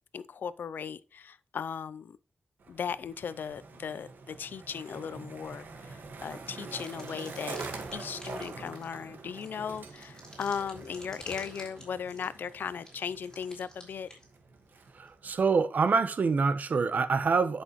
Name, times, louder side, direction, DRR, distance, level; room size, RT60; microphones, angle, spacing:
voice 1, 0.1-2.2 2.7-7.6 7.9-14.1, left 7 dB, 80° left, 0.5 m, -37 dB
Skateboard, 2.6-15.3, right 3 dB, 80° right, 1.6 m, -45 dB
sound 1, 5.6-5.9 6.2-14.3 15.1-15.2, left 1 dB, 15° left, 3.9 m, -51 dB
voice 2, 14.9-17.6, right 4 dB, 60° right, 0.9 m, -26 dB
11.0 x 6.1 x 3.1 m
wide cardioid pair, 105°, 3 cm